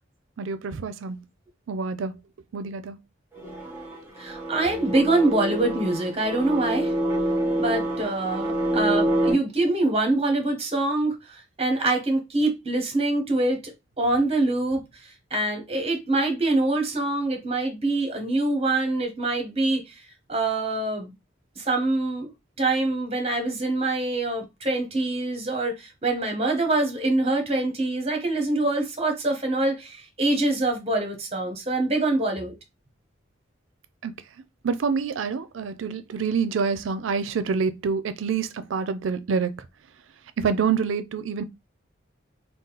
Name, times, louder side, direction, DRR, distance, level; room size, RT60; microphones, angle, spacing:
voice 1, 0.4-1.2 1.7-2.2 2.5-3.0 34.0-34.1 34.6-39.5 40.4-41.4, right 5 dB, 90° right, 0.4 m, -27 dB
sound 1, 3.4-9.3, right 1 dB, 10° right, 1.4 m, -27 dB
voice 2, 4.2-6.9 7.6-20.0 20.3-21.1 21.6-22.3 22.6-32.5, right 2 dB, 30° right, 1.1 m, -25 dB
3.8 x 2.3 x 4.0 m
head